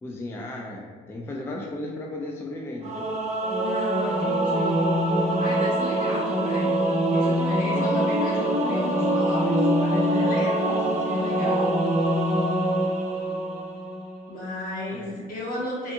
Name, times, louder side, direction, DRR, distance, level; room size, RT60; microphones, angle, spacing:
voice 1, 0.0-3.1 14.9-15.3, left 1 dB, 15° left, -1 dB, 0.3 m, -35 dB
Singing / Musical instrument, 2.8-14.1, right 1 dB, 40° right, 0.6 m, -24 dB
voice 2, 3.5-4.9 5.2-6.8 7.1-11.8 14.3-15.9, left 1 dB, 55° left, -4 dB, 1.1 m, -33 dB
3.5 x 2.3 x 2.6 m, 1.6 s
cardioid pair, 110°, 17 cm